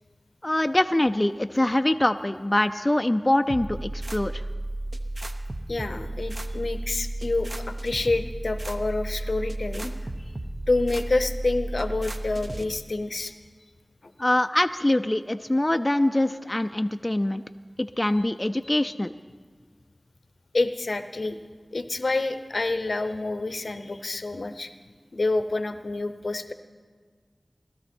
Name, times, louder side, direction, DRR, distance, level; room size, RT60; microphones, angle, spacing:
voice 1, 0.4-4.4 14.2-17.4 17.8-19.1, left 1 dB, 25° left, 8 dB, 0.4 m, -24 dB
sound 1, 3.5-12.6, right 1 dB, 40° right, 0.9 m, -33 dB
voice 2, 5.7-9.9 10.7-13.3 14.0-14.1 20.5-21.4 21.7-24.7 25.1-26.5, left 2 dB, 70° left, 10 dB, 0.7 m, -28 dB
18.5 x 12.5 x 4.4 m, 1.5 s
wide cardioid pair, 45°, 0 cm